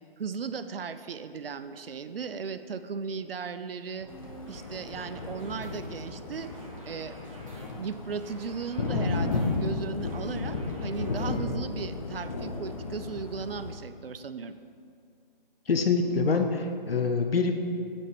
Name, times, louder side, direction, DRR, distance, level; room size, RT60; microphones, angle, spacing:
voice 1, 0.2-4.1 4.5-6.5 6.9-7.1 7.8-14.5, right 5 dB, 80° right, 11 dB, 0.5 m, -36 dB
sound 1, 4.0-11.4, right 1 dB, 35° right, 1.1 m, -48 dB
Thunder, 4.1-13.8, left 3 dB, 35° left, 0.6 m, -33 dB
voice 2, 15.7-17.5, left 4 dB, 80° left, 5 dB, 0.7 m, -25 dB
8.4 x 4.4 x 5.0 m, 2.3 s
figure-of-eight pair, 155°, 29 cm